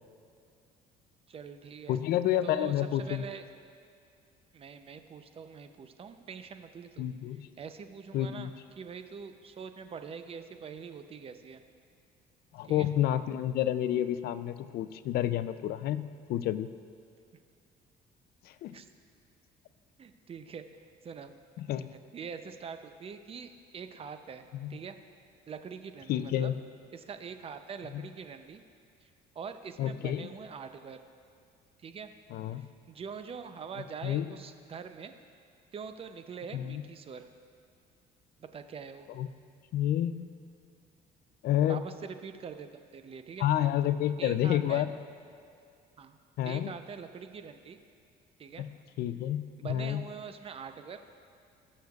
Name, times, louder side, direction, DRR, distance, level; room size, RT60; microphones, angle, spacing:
voice 1, 1.3-2.0 2.4-3.4 4.5-7.1 7.6-8.5 8.8-11.6 12.6-12.9 18.7-18.9 20.0-21.3 21.7-24.4 24.7-25.0 25.5-26.5 26.9-28.6 29.0-29.1 29.3-31.0 31.8-32.1 32.9-35.1 35.7-37.3 38.4-39.1 41.7-42.7 42.9-43.5 44.2-44.9 46.0-46.2 46.4-47.8 48.4-48.7 49.6-51.0, right 6 dB, 35° right, 8 dB, 0.6 m, -43 dB
voice 2, 1.9-3.2 7.0-7.5 8.1-8.5 12.5-16.7 18.4-18.8 21.6-21.9 24.5-24.7 26.1-26.5 27.9-28.0 29.8-30.3 32.3-32.6 34.0-34.3 36.5-36.8 39.2-39.3 39.7-40.3 41.4-41.8 43.4-44.9 46.4-46.7 48.6-48.7 49.0-50.0, left 11 dB, 65° left, 13 dB, 0.4 m, -29 dB
19.5 x 6.5 x 2.4 m, 2.4 s
cardioid pair, 110°, 17 cm